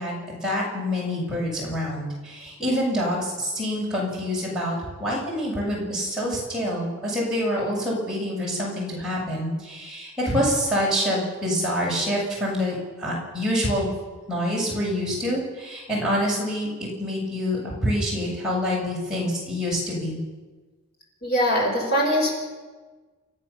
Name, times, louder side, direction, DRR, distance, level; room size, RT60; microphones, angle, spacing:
voice 1, 0.0-13.9 14.3-20.2, equal, 5° right, -6 dB, 7.5 m, -26 dB
voice 2, 21.2-22.4, equal, 45° left, -1 dB, 6.1 m, -22 dB
30.0 x 14.5 x 7.3 m, 1.3 s
head